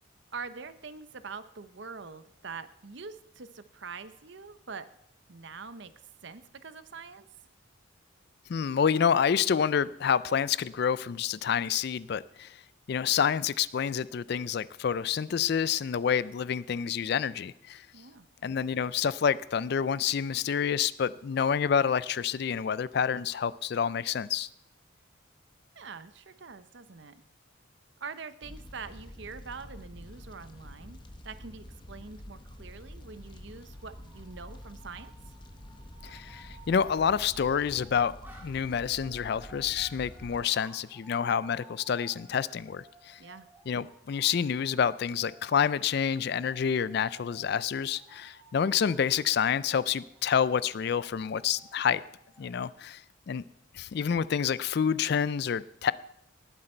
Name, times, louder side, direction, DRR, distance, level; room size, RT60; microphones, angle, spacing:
voice 1, 0.3-4.9 5.3-5.9 6.2-7.3 17.9-18.3 25.7-27.2 28.0-31.0 31.2-35.1 43.2-43.5, right 5 dB, 60° right, 12 dB, 0.8 m, -44 dB
voice 2, 8.5-12.6 12.9-17.9 18.4-24.5 36.0-38.1 38.4-43.2 43.7-52.0 52.4-53.4 53.7-55.9, left 7 dB, 50° left, 18 dB, 0.3 m, -28 dB
Fire, 28.4-40.4, left 1 dB, 20° left, 0.8 m, -47 dB
sound 1, 33.7-52.7, right 2 dB, 10° right, 1.8 m, -57 dB
18.5 x 8.0 x 4.4 m, 0.79 s
head